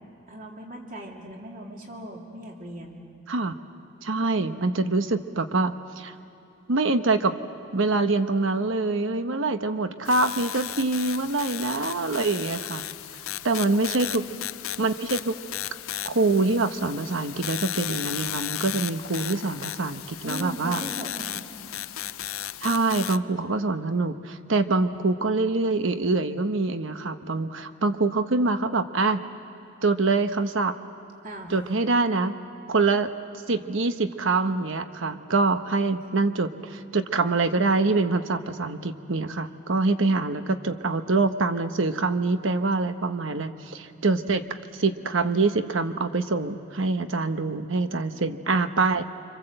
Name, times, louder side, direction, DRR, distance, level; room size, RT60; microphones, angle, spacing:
voice 1, 0.3-3.0 13.5-14.2 20.2-21.7 31.2-31.7, right 1 dB, 40° right, 0 dB, 2.9 m, -39 dB
voice 2, 4.0-6.1 6.7-7.3 7.7-12.8 13.4-14.2 14.8-15.4 16.0-20.8 22.6-29.2 29.8-30.7 31.5-32.3 32.7-33.1 33.5-49.0, right 3 dB, 70° right, 9 dB, 1.0 m, -25 dB
sound 1, 10.1-23.2, left 12 dB, 80° left, 0.6 m, -35 dB
26.5 x 25.5 x 7.8 m, 2.6 s
head